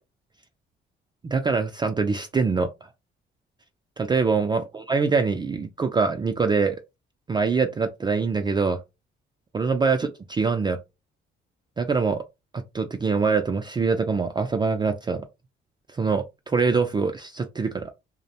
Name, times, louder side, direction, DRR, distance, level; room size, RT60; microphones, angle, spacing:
voice 1, 1.2-2.7 4.0-6.8 7.3-8.8 9.5-10.8 11.8-12.2 12.5-15.2 15.9-17.9, right 4 dB, 25° right, 0.3 m, -24 dB
2.5 x 2.0 x 2.8 m
cardioid pair, 90°, 20 cm